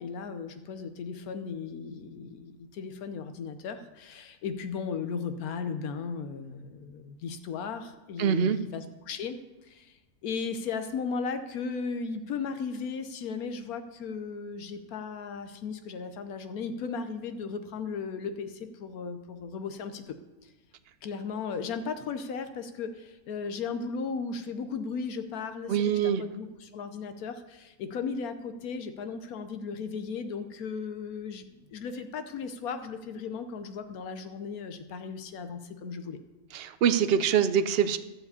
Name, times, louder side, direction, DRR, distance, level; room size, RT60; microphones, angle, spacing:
voice 1, 0.0-20.2 20.4-20.5 21.0-36.2, left 5 dB, 80° left, 9 dB, 1.2 m, -36 dB
voice 2, 8.2-8.6 25.7-26.2 36.5-38.0, right 8 dB, 65° right, 12 dB, 0.6 m, -24 dB
12.0 x 4.8 x 8.1 m, 1.1 s
omnidirectional pair, 1.5 m